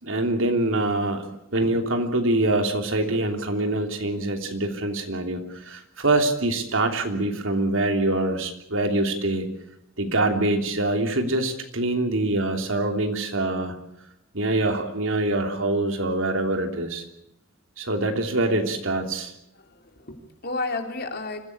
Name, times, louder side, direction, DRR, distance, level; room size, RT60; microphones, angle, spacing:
voice 1, 0.0-1.2 1.5-9.5 10.0-13.7 14.3-17.0 17.8-19.3, right 2 dB, 80° right, 5 dB, 3.1 m, -24 dB
voice 2, 19.5-21.4, left 3 dB, 55° left, 4 dB, 3.3 m, -32 dB
25.5 x 15.5 x 8.6 m, 0.82 s
head